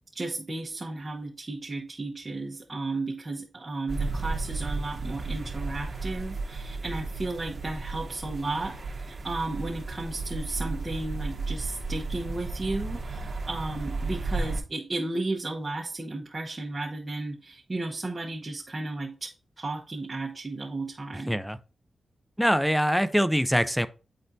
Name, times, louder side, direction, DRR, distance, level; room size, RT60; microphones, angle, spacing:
voice 1, 0.1-19.3 19.6-21.3, right 2 dB, 30° right, 1.1 m, -34 dB
sound 1, 3.9-14.6, right 3 dB, 55° right, 1.1 m, -34 dB
voice 2, 21.3-21.6 22.4-23.9, equal, ahead, 0.5 m, -23 dB
9.6 x 4.2 x 2.7 m
cardioid pair, 65°, 0 cm